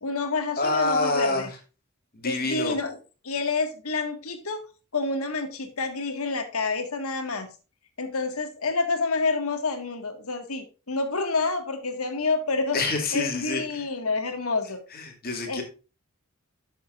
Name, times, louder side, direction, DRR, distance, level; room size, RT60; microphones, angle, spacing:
voice 1, 0.0-1.5 2.2-3.0 3.2-4.7 4.9-7.5 8.0-14.8 15.5-15.6, left 3 dB, 80° left, 6 dB, 1.8 m, -28 dB
voice 2, 0.6-1.6 2.1-2.8 12.7-13.9 14.9-15.6, left 2 dB, 45° left, 3 dB, 2.4 m, -27 dB
12.0 x 7.0 x 2.5 m, 0.33 s
head